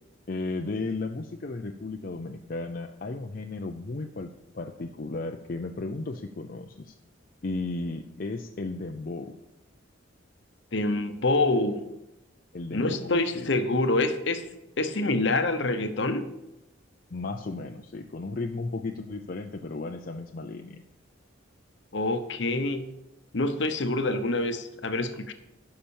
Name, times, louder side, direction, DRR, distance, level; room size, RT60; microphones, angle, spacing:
voice 1, 0.3-4.3 4.5-6.9 7.4-9.4 12.5-13.5 17.1-20.8, left 3 dB, 45° left, 3 dB, 0.5 m, -34 dB
voice 2, 10.7-11.9 12.7-14.5 14.8-16.3 21.9-22.9 23.3-25.3, left 2 dB, 60° left, 9 dB, 0.9 m, -26 dB
9.8 x 5.8 x 7.1 m, 0.92 s
head